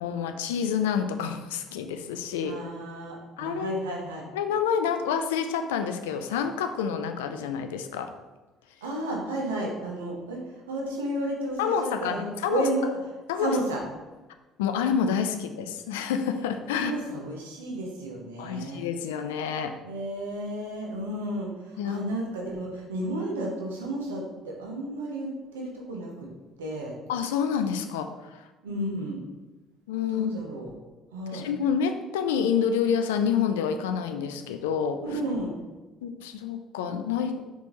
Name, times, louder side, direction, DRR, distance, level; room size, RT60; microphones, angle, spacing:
voice 1, 0.0-2.6 3.4-3.8 4.3-8.1 11.6-12.7 13.3-13.6 14.6-16.9 18.4-19.8 21.8-22.0 27.1-28.5 29.9-30.3 31.3-35.0 36.0-37.4, left 7 dB, 80° left, 8 dB, 0.3 m, -28 dB
voice 2, 2.4-4.2 8.8-12.9 13.4-13.8 16.7-18.8 19.8-26.3 26.6-26.9 28.6-29.2 30.1-30.7 31.1-31.4 35.0-35.6, right 1 dB, 85° right, -1 dB, 0.8 m, -32 dB
4.1 x 3.6 x 3.0 m, 1.2 s
hypercardioid pair, 55°, 0 cm